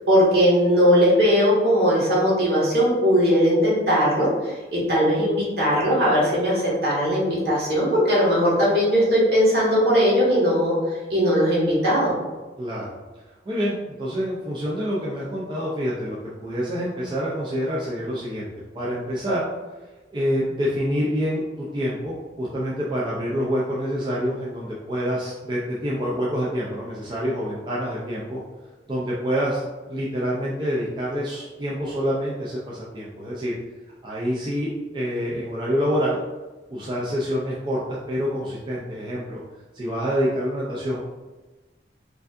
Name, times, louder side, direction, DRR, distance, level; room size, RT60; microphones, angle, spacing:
voice 1, 0.1-12.1, equal, 65° right, -6 dB, 1.5 m, -19 dB
voice 2, 13.5-18.5 18.7-19.5 20.1-28.4 28.9-33.6 34.0-36.2 36.7-39.4 39.7-41.0, equal, 25° right, -6 dB, 0.5 m, -27 dB
4.7 x 2.6 x 2.5 m, 1.2 s
head